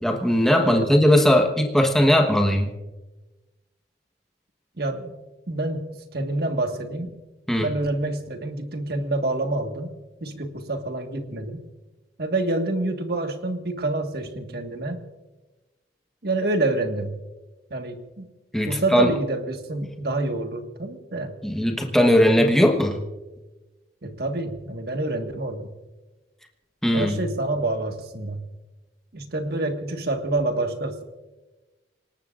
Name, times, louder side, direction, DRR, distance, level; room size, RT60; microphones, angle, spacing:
voice 1, 0.0-2.7 7.5-7.7 18.5-19.1 21.4-23.0 26.8-27.3, equal, 5° left, 2 dB, 1.2 m, -19 dB
voice 2, 0.5-0.9 4.8-5.2 5.5-5.9 6.1-7.1 7.6-9.9 10.2-11.6 12.2-15.0 16.2-17.2 17.7-18.3 18.7-21.3 22.4-22.5 24.0-25.7 26.9-28.5 29.1-31.0, right 2 dB, 60° right, 5 dB, 1.7 m, -27 dB
28.0 x 19.0 x 2.5 m, 1.1 s
head